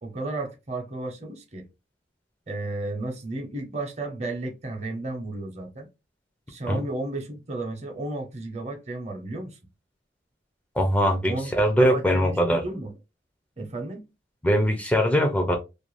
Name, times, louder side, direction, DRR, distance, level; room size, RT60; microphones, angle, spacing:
voice 1, 0.0-1.6 2.5-5.9 6.5-9.6 11.3-11.5 11.8-12.9 13.6-14.0, right 2 dB, 40° right, 0.7 m, -33 dB
voice 2, 10.8-12.6 14.4-15.6, equal, 10° left, 0.4 m, -21 dB
2.5 x 2.2 x 3.0 m
head